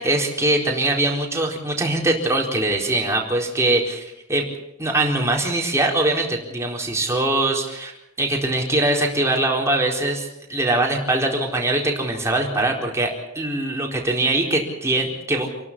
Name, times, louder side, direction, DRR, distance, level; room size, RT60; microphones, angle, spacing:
voice 1, 0.0-4.5 4.8-13.1 13.3-15.5, right 2 dB, 15° right, 0 dB, 4.2 m, -22 dB
28.0 x 12.5 x 8.8 m, 0.84 s
head